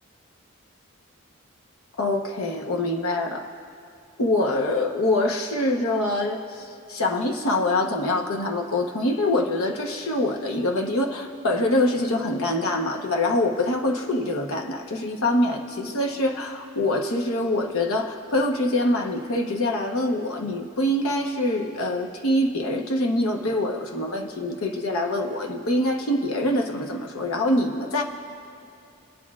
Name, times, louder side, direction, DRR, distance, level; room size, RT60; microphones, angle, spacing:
voice 1, 2.0-3.5 4.2-28.0, left 1 dB, 85° left, 2 dB, 1.0 m, -24 dB
22.0 x 9.4 x 2.4 m, 2.6 s
head